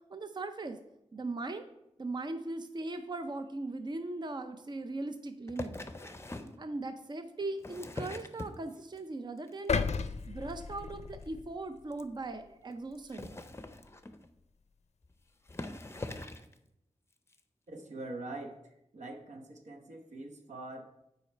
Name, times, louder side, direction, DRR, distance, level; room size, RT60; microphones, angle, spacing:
voice 1, 0.1-0.8 1.1-1.7 2.0-5.7 6.6-9.8 10.3-13.4, right 2 dB, 40° right, 8 dB, 0.5 m, -39 dB
sound 1, 5.5-6.6 7.4-9.0 9.4-9.8 10.1-10.2 10.5-10.6 10.8-10.9 11.2-11.3 11.9-12.0 13.0-14.3 15.0-15.1 15.5-16.5 17.3-17.4, left 2 dB, 20° left, 0.6 m, -42 dB
sound 2, 9.7-11.9 12.3-12.5, left 5 dB, 70° left, 0.4 m, -34 dB
voice 2, 17.7-18.6 18.9-21.0, right 2 dB, 90° right, 3 dB, 1.1 m, -43 dB
8.2 x 4.8 x 4.5 m, 0.84 s
wide cardioid pair, 65°, 12 cm